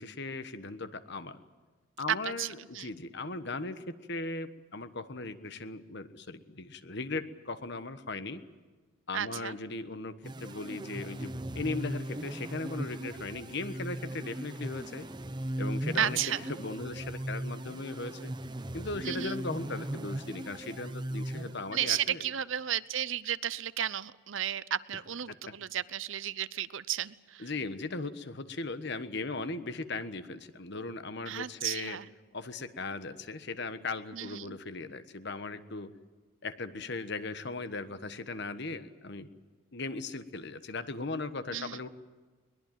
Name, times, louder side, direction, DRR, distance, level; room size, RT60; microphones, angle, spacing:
voice 1, 0.0-1.4 2.0-8.4 9.1-15.1 15.6-18.3 18.7-22.2 25.3-25.5 27.4-32.0 32.3-35.9 36.4-39.3 39.7-41.9, left 3 dB, 55° left, 12 dB, 1.3 m, -38 dB
voice 2, 2.1-2.9 9.1-9.6 16.0-16.4 19.0-19.4 21.7-27.5 31.3-32.1 34.1-34.6 41.5-41.8, right 10 dB, 65° right, 17 dB, 0.7 m, -33 dB
sound 1, 10.2-22.0, right 1 dB, 20° right, 0.9 m, -38 dB
22.5 x 20.5 x 9.2 m, 1.3 s
head